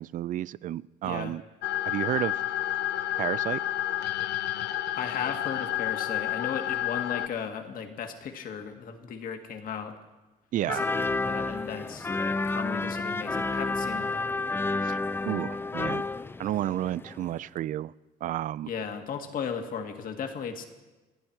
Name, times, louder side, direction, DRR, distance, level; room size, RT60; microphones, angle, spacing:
voice 1, 0.0-1.4 1.8-2.4 3.2-3.6 10.5-10.9 14.8-15.0 15.2-16.0 16.4-17.9 18.2-18.7, right 13 dB, 50° right, 20 dB, 0.4 m, -31 dB
voice 2, 1.0-1.3 5.0-10.0 10.6-12.1 12.5-14.3 18.7-20.6, left 7 dB, 55° left, 6 dB, 1.8 m, -36 dB
sound 1, 1.6-7.3, left 12 dB, 80° left, 0.8 m, -30 dB
sound 2, 10.7-17.3 17.6-17.7, left 3 dB, 15° left, 0.4 m, -30 dB
27.5 x 10.5 x 4.5 m, 1.2 s
cardioid pair, 110°, 17 cm